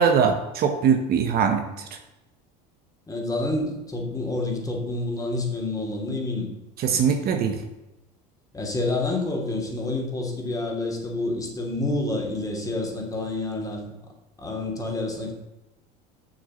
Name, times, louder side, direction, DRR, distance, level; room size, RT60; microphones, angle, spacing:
voice 1, 0.0-1.9 6.8-7.6, right 6 dB, 50° right, 6 dB, 1.2 m, -22 dB
voice 2, 3.1-6.5 6.9-7.2 8.5-13.8 14.4-15.3, left 2 dB, 15° left, 0 dB, 2.9 m, -28 dB
7.0 x 6.5 x 7.1 m, 0.97 s
supercardioid pair, 95°, 21 cm